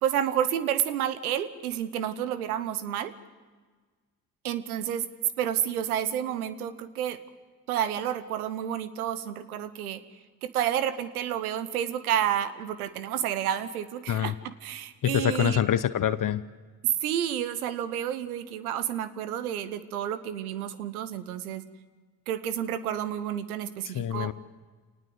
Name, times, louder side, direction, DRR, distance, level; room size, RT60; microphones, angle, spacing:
voice 1, 0.0-3.1 4.4-5.1 5.4-7.2 7.7-10.0 10.4-15.6 17.0-21.6 22.3-24.3, right 10 dB, 90° right, 14 dB, 1.0 m, -30 dB
voice 2, 15.0-16.4 23.8-24.3, left 10 dB, 50° left, 14 dB, 0.9 m, -25 dB
27.0 x 19.0 x 8.0 m, 1.4 s
hypercardioid pair, 45°, 43 cm